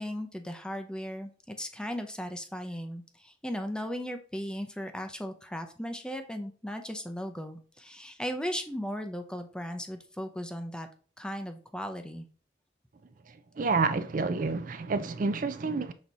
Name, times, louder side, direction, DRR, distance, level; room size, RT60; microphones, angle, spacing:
voice 1, 0.0-10.9 11.2-12.3, equal, 5° left, 0.6 m, -37 dB
voice 2, 13.6-15.9, right 4 dB, 45° right, 0.4 m, -29 dB
6.3 x 3.9 x 4.1 m
head